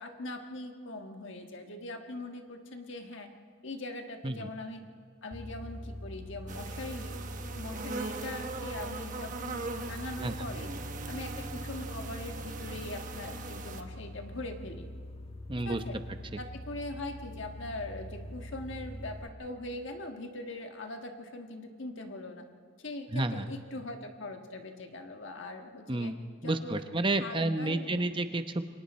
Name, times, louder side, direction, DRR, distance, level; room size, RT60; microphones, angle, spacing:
voice 1, 0.0-3.3 3.6-4.8 5.2-7.2 7.5-10.7 11.1-14.9 15.6-16.0 16.4-22.4 22.8-26.1 26.4-26.8 27.2-28.1, left 2 dB, 65° left, 4 dB, 1.5 m, -41 dB
sound 1, 5.3-19.3, equal, 30° left, 1.4 m, -43 dB
sound 2, 6.5-13.8, right 3 dB, 40° right, 1.3 m, -40 dB
voice 2, 15.5-15.8 16.3-16.4 23.1-23.5 25.9-26.2 26.4-28.6, right 2 dB, 25° right, 8 dB, 0.8 m, -30 dB
28.5 x 23.5 x 4.3 m, 2.1 s
head